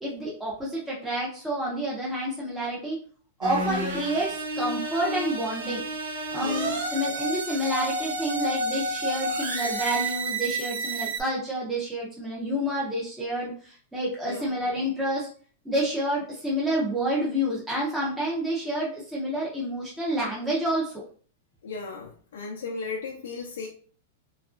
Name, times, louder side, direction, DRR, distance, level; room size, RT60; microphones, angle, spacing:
voice 1, 0.0-3.0 3.4-5.8 6.3-15.3 15.6-20.9, equal, 5° right, -6 dB, 0.5 m, -29 dB
sound 1, 3.4-11.2, right 1 dB, 85° right, 0.9 m, -30 dB
voice 2, 21.6-23.7, left 4 dB, 80° left, -1 dB, 0.5 m, -36 dB
2.8 x 2.3 x 2.4 m, 0.43 s
supercardioid pair, 175°, 0 cm